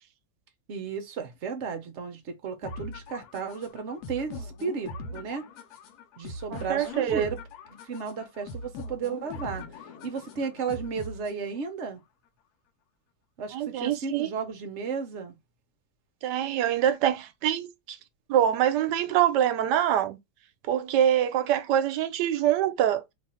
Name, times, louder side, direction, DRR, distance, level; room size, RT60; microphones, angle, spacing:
voice 1, 0.7-5.5 6.2-7.4 7.7-9.7 10.0-12.0 13.4-15.4, right 5 dB, 55° right, 0.9 m, -34 dB
sound 1, 2.6-11.6, left 2 dB, 75° left, 1.2 m, -41 dB
voice 2, 6.5-7.3 13.5-14.3 16.2-18.0 18.3-20.2 20.7-23.0, right 10 dB, 85° right, 1.2 m, -25 dB
3.0 x 2.5 x 4.2 m
omnidirectional pair, 1.8 m